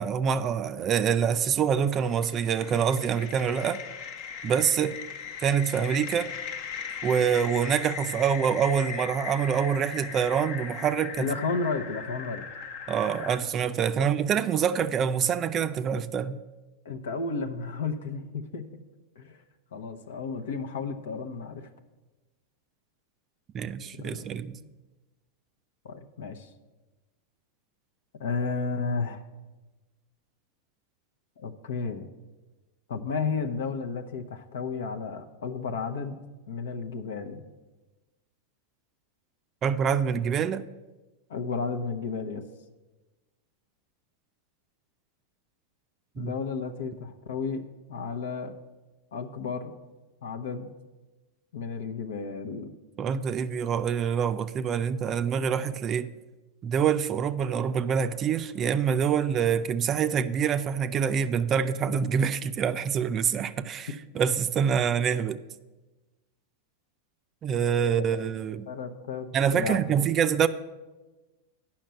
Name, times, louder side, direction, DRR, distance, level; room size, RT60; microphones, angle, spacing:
voice 1, 0.0-3.8 4.4-5.0 5.4-6.3 7.0-11.3 12.9-16.4 23.5-24.6 39.6-40.6 46.2-46.3 53.0-56.1 56.6-65.4 67.4-68.7 69.3-70.5, right 7 dB, 35° right, 0.4 m, -26 dB
sound 1, 1.5-13.4, left 7 dB, 55° left, 0.9 m, -39 dB
voice 2, 11.2-12.4 14.0-14.1 16.8-18.8 19.2-19.4 19.7-21.7 24.0-24.7 25.8-26.5 28.2-29.2 31.4-32.0 32.9-36.2 36.5-37.4 41.3-42.4 46.2-47.6 47.9-48.6 49.1-49.8 50.2-50.7 51.5-52.7 68.1-68.2 68.7-70.1, left 4 dB, 80° left, 0.8 m, -33 dB
9.0 x 5.8 x 7.5 m
hypercardioid pair, 115°, 0 cm